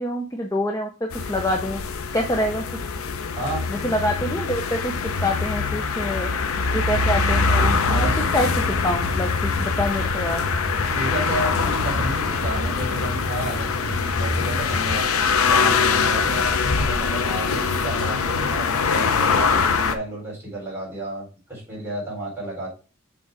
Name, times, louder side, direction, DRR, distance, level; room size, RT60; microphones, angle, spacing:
voice 1, 0.0-1.8 2.1-2.6 3.7-6.3 6.6-10.4, left 1 dB, 15° left, 2 dB, 0.5 m, -26 dB
sound 1, 1.1-20.0, left 5 dB, 85° left, 0.7 m, -23 dB
voice 2, 3.4-3.7 7.9-8.3 10.8-15.0 15.5-16.5 16.9-22.7, right 1 dB, 10° right, -6 dB, 3.7 m, -31 dB
sound 2, 6.9-14.9, left 1 dB, 75° right, 1.3 m, -31 dB
6.5 x 3.8 x 4.6 m, 0.33 s
head